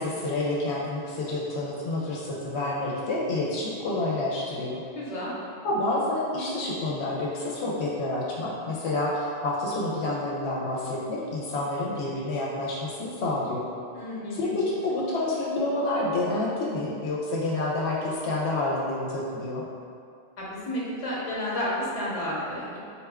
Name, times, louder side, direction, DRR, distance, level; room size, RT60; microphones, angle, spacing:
voice 1, 0.0-4.8 5.6-13.6 14.3-19.6, left 2 dB, 75° left, -5 dB, 0.9 m, -28 dB
voice 2, 4.9-5.3 13.9-14.6 20.4-22.8, left 1 dB, 35° left, -6 dB, 0.8 m, -31 dB
4.1 x 2.2 x 3.5 m, 2.5 s
omnidirectional pair, 1.2 m